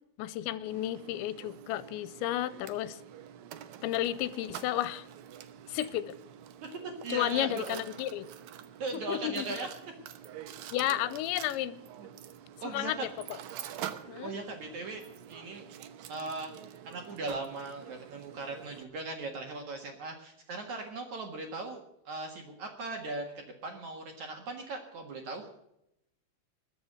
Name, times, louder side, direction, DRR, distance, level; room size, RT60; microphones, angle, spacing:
voice 1, 0.2-3.0 3.8-5.1 5.7-6.2 7.1-8.3 8.9-9.5 10.7-11.8 12.6-13.4 14.1-14.3, left 13 dB, 85° left, 17 dB, 3.0 m, -32 dB
Mechanisms, 0.7-18.8, right 10 dB, 75° right, 2.2 m, -47 dB
voice 2, 6.8-7.8 8.8-9.7 12.0-12.1 12.6-13.1 14.2-15.0 15.3-15.6 16.1-16.5 16.8-25.4, right 3 dB, 55° right, 4 dB, 2.4 m, -38 dB
21.0 x 7.1 x 7.9 m, 0.80 s
omnidirectional pair, 5.2 m